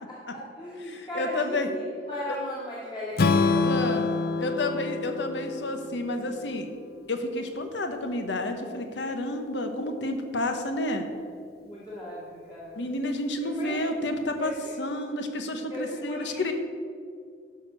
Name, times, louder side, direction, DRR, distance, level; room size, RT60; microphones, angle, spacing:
voice 1, 0.1-3.7 11.6-12.8 13.6-13.8 14.4-14.7 15.7-16.4, left 1 dB, 25° left, -8 dB, 2.0 m, -36 dB
voice 2, 0.9-1.7 3.6-4.1 4.4-6.7 7.1-11.0 12.8-16.5, left 1 dB, 75° left, 6 dB, 1.0 m, -30 dB
Strum, 3.2-7.4, left 3 dB, 55° left, 0.5 m, -27 dB
11.5 x 5.0 x 6.7 m, 2.3 s
head